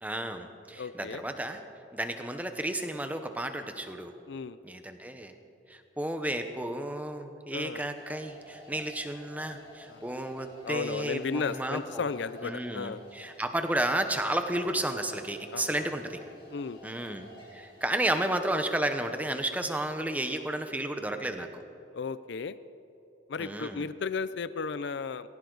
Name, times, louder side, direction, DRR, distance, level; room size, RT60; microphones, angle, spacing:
voice 1, 0.0-1.6 1.9-4.1 4.6-5.3 5.7-12.0 12.4-16.2 16.8-17.2 17.5-21.6 23.4-23.9, right 1 dB, 10° right, 7 dB, 0.9 m, -32 dB
voice 2, 0.8-1.2 4.3-4.6 7.5-7.8 9.9-10.1 10.6-13.0 15.5-15.9 16.5-16.8 21.9-22.6 23.3-25.3, left 5 dB, 65° left, 15 dB, 0.5 m, -34 dB
sound 1, 7.9-18.7, right 1 dB, 25° left, 4.4 m, -52 dB
20.0 x 17.5 x 4.0 m, 2.8 s
head